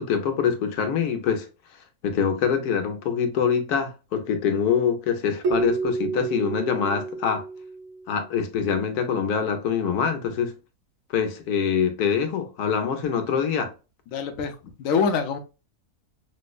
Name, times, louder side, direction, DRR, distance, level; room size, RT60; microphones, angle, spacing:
voice 1, 0.0-1.5 2.0-7.4 8.1-10.6 11.1-13.7, left 7 dB, 85° left, 1.2 m, -24 dB
Keyboard (musical), 5.4-8.3, right 4 dB, 60° right, 1.1 m, -29 dB
voice 2, 14.1-15.4, left 5 dB, 65° left, 1.0 m, -25 dB
5.1 x 2.1 x 2.3 m
omnidirectional pair, 1.6 m